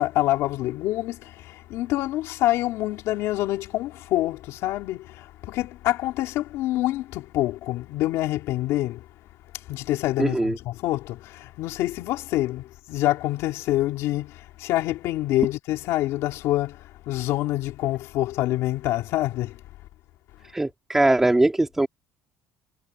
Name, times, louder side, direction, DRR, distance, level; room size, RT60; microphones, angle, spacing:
voice 1, 0.0-9.0 9.7-19.6, left 15 dB, 75° left, 3.4 m, -26 dB
voice 2, 10.2-10.6 20.5-21.9, right 2 dB, 10° right, 2.9 m, -21 dB
cardioid pair, 175°, 5 cm